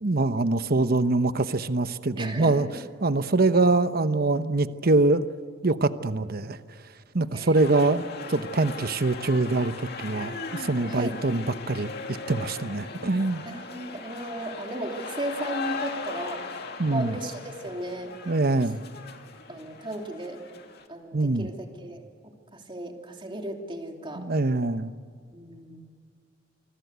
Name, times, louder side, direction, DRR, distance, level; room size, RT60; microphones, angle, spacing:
voice 1, 0.0-2.7 3.0-5.3 5.6-6.6 7.1-8.0 8.3-9.7 10.0-11.9 12.3-13.4 16.8-17.1 18.3-18.8 21.1-21.5 24.2-24.9, right 2 dB, 50° right, 11 dB, 1.0 m, -24 dB
voice 2, 2.2-2.8 7.3-7.8 10.9-11.2 13.4-18.3 19.5-20.4 20.9-22.0 22.5-24.3 25.3-25.8, right 1 dB, 25° right, 2 dB, 3.0 m, -36 dB
sound 1, 7.5-20.9, left 4 dB, 55° left, 2.4 m, -38 dB
27.0 x 24.5 x 8.2 m, 2.1 s
head